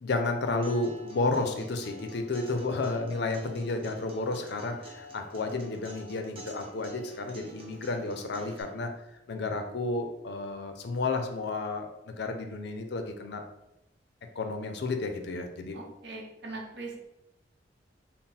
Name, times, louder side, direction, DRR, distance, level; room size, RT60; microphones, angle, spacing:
voice 1, 0.0-8.9 9.3-13.4 14.4-15.8, left 3 dB, 65° left, 6 dB, 0.5 m, -32 dB
Acoustic guitar, 0.6-8.6, right 2 dB, 30° right, 0.7 m, -48 dB
voice 2, 15.7-17.0, right 3 dB, 65° right, -1 dB, 0.8 m, -41 dB
3.7 x 2.1 x 4.2 m, 0.87 s
head